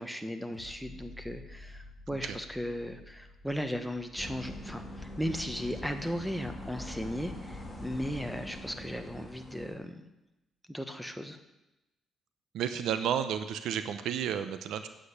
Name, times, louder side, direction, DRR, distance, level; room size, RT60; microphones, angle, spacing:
voice 1, 0.0-10.0 10.7-11.4, equal, ahead, 7 dB, 1.3 m, -36 dB
sound 1, 0.5-7.6 8.0-8.1, left 1 dB, 20° right, 3.0 m, -53 dB
sound 2, 4.2-9.8, left 1 dB, 15° left, 2.5 m, -43 dB
voice 2, 12.5-14.9, right 9 dB, 80° right, 10 dB, 0.8 m, -32 dB
9.1 x 7.6 x 8.3 m, 0.97 s
cardioid pair, 90°, 0 cm